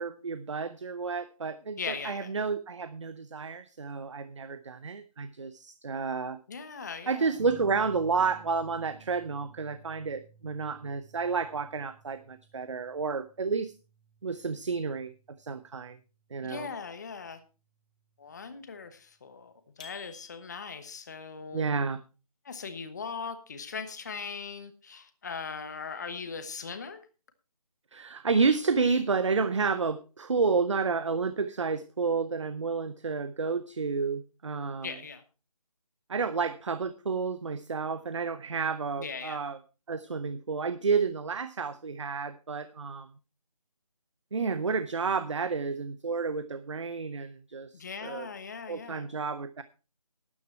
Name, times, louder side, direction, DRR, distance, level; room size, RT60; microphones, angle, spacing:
voice 1, 0.0-6.4 7.1-13.7 14.2-16.0 16.3-16.7 21.5-22.0 27.9-34.9 36.1-39.6 39.9-43.1 44.3-48.3 48.7-49.6, right 5 dB, 50° right, 13 dB, 0.7 m, -30 dB
voice 2, 1.8-2.3 6.5-7.4 16.4-17.4 18.2-21.6 22.4-27.0 34.8-35.2 39.0-39.4 47.7-49.1, left 5 dB, 30° left, 10 dB, 1.1 m, -39 dB
sound 1, 7.4-16.5 17.9-18.5, right 4 dB, 5° right, 1.5 m, -55 dB
sound 2, 19.8-20.9, left 7 dB, 10° left, 0.8 m, -50 dB
12.5 x 9.7 x 4.4 m, 0.32 s
figure-of-eight pair, 165°, 20 cm